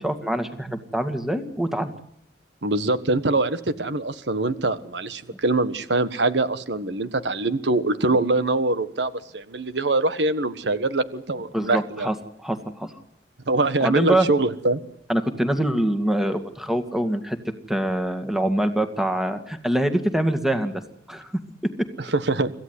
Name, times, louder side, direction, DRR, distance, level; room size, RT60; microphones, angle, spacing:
voice 1, 0.0-1.9 11.5-12.9 13.8-14.3 15.1-17.4 17.7-20.8 21.1-21.3 21.6-21.7, right 1 dB, ahead, 8 dB, 2.1 m, -24 dB
voice 2, 2.6-12.1 13.5-14.8 22.1-22.5, right 2 dB, 80° right, 12 dB, 1.4 m, -23 dB
26.5 x 15.5 x 9.8 m, 0.71 s
head